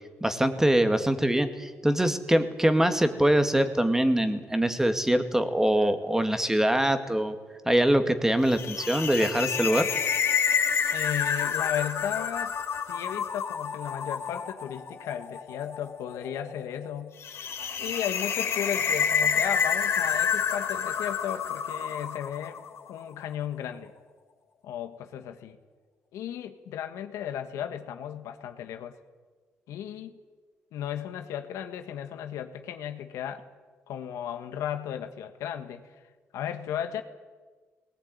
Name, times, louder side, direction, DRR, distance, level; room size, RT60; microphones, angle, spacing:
voice 1, 0.2-7.4 7.7-9.9, right 1 dB, 10° right, 9 dB, 2.1 m, -23 dB
sound 1, 8.5-22.8, left 7 dB, 70° left, 4.0 m, -29 dB
voice 2, 10.9-12.6 12.9-17.1 17.8-22.6 22.9-23.9 24.6-25.6 26.1-29.0 29.7-30.1 30.7-33.4 33.9-35.8 36.3-37.0, left 10 dB, 90° left, 8 dB, 1.6 m, -35 dB
19.5 x 18.5 x 9.5 m, 1.4 s
cardioid pair, 80°, 5 cm